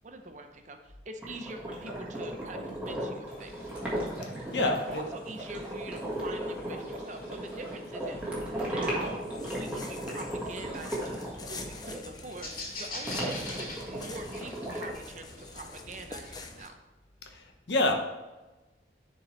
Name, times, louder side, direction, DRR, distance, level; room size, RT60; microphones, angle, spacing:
voice 1, 0.0-3.7 4.4-16.8, right 2 dB, 40° right, 6 dB, 0.7 m, -44 dB
sound 1, 1.2-12.0 13.0-14.9, right 1 dB, 5° right, 1.5 m, -36 dB
sound 2, 3.3-16.7, left 2 dB, 50° left, 2.1 m, -46 dB
voice 2, 4.5-5.0 17.2-18.0, left 2 dB, 80° left, 4 dB, 1.0 m, -28 dB
sound 3, 9.1-16.7, left 3 dB, 20° left, 0.5 m, -46 dB
10.5 x 4.6 x 3.2 m, 1.1 s
head